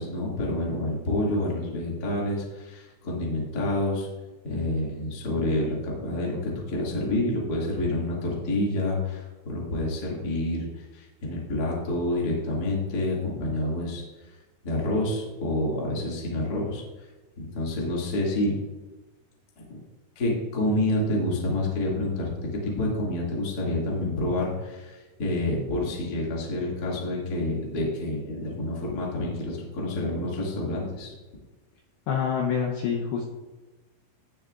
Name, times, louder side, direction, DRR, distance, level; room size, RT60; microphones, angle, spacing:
voice 1, 0.0-4.1 4.4-14.0 14.6-16.8 17.5-18.5 19.6-19.7 20.1-22.3 22.6-31.1, left 1 dB, 50° left, -4 dB, 1.1 m, -28 dB
voice 2, 32.1-33.2, left 7 dB, 80° left, -1 dB, 2.4 m, -26 dB
17.0 x 6.8 x 2.5 m, 1.2 s
omnidirectional pair, 6.0 m